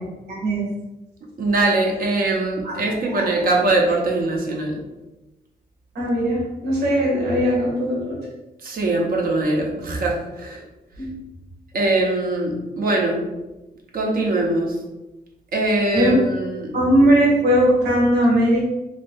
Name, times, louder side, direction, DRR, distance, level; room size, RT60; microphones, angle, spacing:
voice 1, 0.3-0.7 2.6-2.8 3.1-3.3 5.9-8.2 11.0-11.2 15.9-16.2 16.7-18.6, equal, 85° right, -4 dB, 1.1 m, -19 dB
voice 2, 1.4-4.8 8.6-10.6 11.7-13.3 13.9-14.7 15.5-16.7, right 2 dB, 60° right, -1 dB, 0.7 m, -22 dB
2.6 x 2.5 x 3.5 m, 1.0 s
cardioid pair, 100°, 17 cm